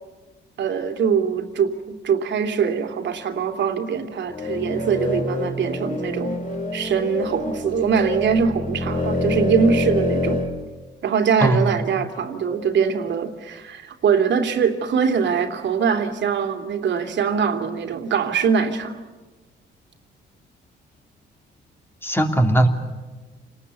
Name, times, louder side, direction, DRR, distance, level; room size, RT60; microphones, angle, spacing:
voice 1, 0.6-6.4 6.7-10.4 11.0-19.0, right 6 dB, 65° right, 6 dB, 2.8 m, -22 dB
sound 1, 4.3-10.5, left 2 dB, 40° left, 5.3 m, -26 dB
voice 2, 11.4-11.7 22.0-22.7, right 1 dB, 10° left, 4 dB, 3.2 m, -18 dB
29.0 x 19.5 x 8.4 m, 1.2 s
cardioid pair, 90°, 20 cm